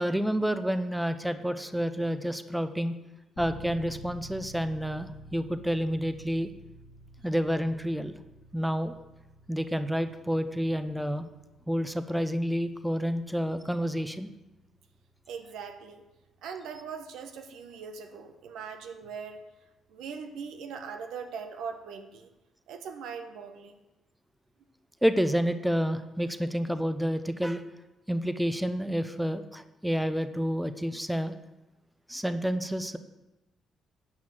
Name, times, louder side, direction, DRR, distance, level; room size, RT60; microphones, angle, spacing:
voice 1, 0.0-3.0 3.4-6.5 7.2-8.1 8.5-9.0 9.5-11.3 11.7-14.3 25.0-27.6 28.1-31.3 32.1-33.0, equal, 5° right, 10 dB, 0.7 m, -29 dB
sound 1, 3.4-20.1, equal, 80° left, 1.9 m, -52 dB
voice 2, 15.3-16.0 16.4-19.4 19.9-22.3 22.7-23.7, right 6 dB, 85° right, 6 dB, 1.1 m, -40 dB
10.5 x 5.7 x 7.7 m, 1.0 s
cardioid pair, 90°, 0 cm